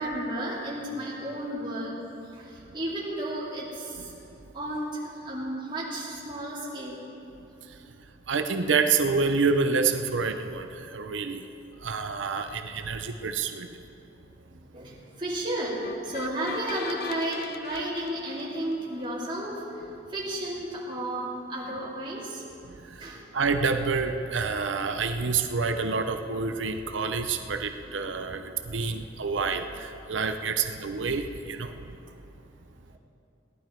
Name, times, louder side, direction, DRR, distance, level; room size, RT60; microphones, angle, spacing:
voice 1, 0.0-2.0 2.3-4.1 4.5-7.0 14.5-22.4 23.0-23.2 27.8-27.9 28.9-29.2 32.9-33.0, right 1 dB, 25° right, -7 dB, 2.8 m, -33 dB
voice 2, 8.3-10.7 10.9-11.4 11.8-13.7 23.3-28.4 28.7-31.7, right 4 dB, 75° right, 7 dB, 0.7 m, -27 dB
sound 1, 15.8-19.1, left 6 dB, 50° left, 0.4 m, -41 dB
18.0 x 11.5 x 4.6 m, 2.7 s
head